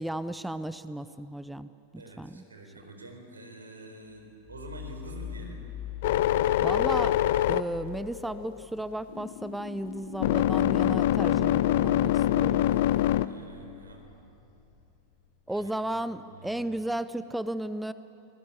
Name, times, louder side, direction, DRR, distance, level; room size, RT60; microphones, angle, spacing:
voice 1, 0.0-2.4 6.6-7.2 7.5-12.7 15.5-17.9, right 1 dB, 5° right, 14 dB, 0.5 m, -34 dB
voice 2, 2.0-5.6 12.2-14.0 15.5-15.8 16.1-16.7, right 2 dB, 75° right, 3 dB, 4.3 m, -47 dB
sound 1, 4.1-12.3 12.7-15.3, left 8 dB, 30° left, 5.8 m, -46 dB
sound 2, 6.0-8.7 9.1-13.3, left 13 dB, 55° left, 0.6 m, -25 dB
25.5 x 19.5 x 8.6 m, 2.9 s
figure-of-eight pair, 90°, 0 cm